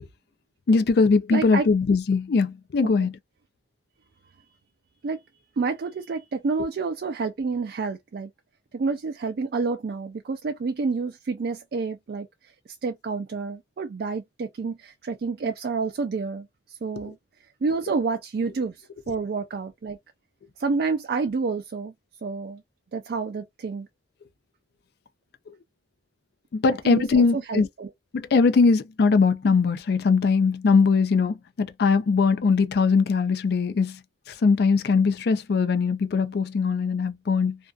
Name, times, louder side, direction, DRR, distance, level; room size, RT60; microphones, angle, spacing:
voice 1, 0.7-3.1 17.0-17.1 26.5-27.7 28.1-34.0 34.3-37.6, left 4 dB, 60° left, 0.4 m, -21 dB
voice 2, 1.3-1.7 3.0-3.1 5.0-5.2 5.6-8.3 8.7-12.3 12.7-17.2 17.6-20.0 20.6-21.9 22.2-22.6 22.9-23.9 26.8-27.9, right 4 dB, 60° right, 0.4 m, -29 dB
2.5 x 2.3 x 2.3 m
head